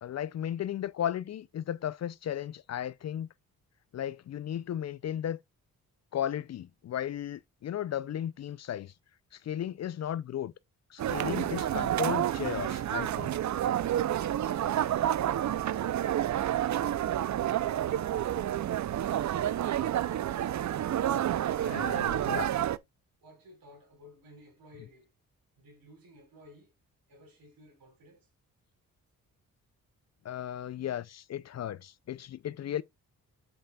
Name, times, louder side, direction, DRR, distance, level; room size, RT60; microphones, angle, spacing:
voice 1, 0.0-3.3 3.9-5.4 6.1-8.9 9.3-10.5 10.9-13.4 21.6-22.5 30.2-32.8, left 10 dB, 50° left, 0.4 m, -35 dB
sound 1, 11.0-22.8, right 11 dB, 55° right, 0.5 m, -29 dB
voice 2, 23.2-25.1 25.6-26.7 27.1-28.3, left 1 dB, 70° right, 4.6 m, -56 dB
8.1 x 5.1 x 2.3 m
cardioid pair, 70°, 35 cm